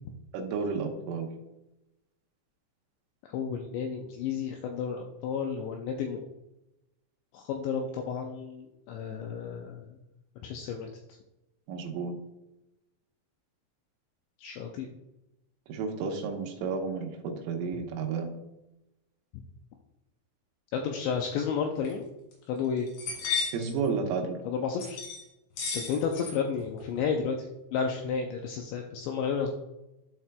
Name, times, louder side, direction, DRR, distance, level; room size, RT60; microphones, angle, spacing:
voice 1, 0.3-1.3 11.7-12.1 15.7-18.4 23.5-24.4, right 5 dB, 80° right, 2 dB, 3.4 m, -32 dB
voice 2, 3.3-6.2 7.3-9.9 10.4-10.9 14.4-14.9 20.7-22.0 22.5-22.9 24.5-25.0 25.7-27.5 27.7-29.5, left 6 dB, 90° left, 2 dB, 2.5 m, -32 dB
sound 1, 21.8-21.9 22.3-22.4 22.8-23.7 24.8-25.2 25.6-26.3 26.6-27.0, left 5 dB, 75° left, 4.5 m, -33 dB
12.5 x 4.3 x 2.2 m, 0.93 s
omnidirectional pair, 5.7 m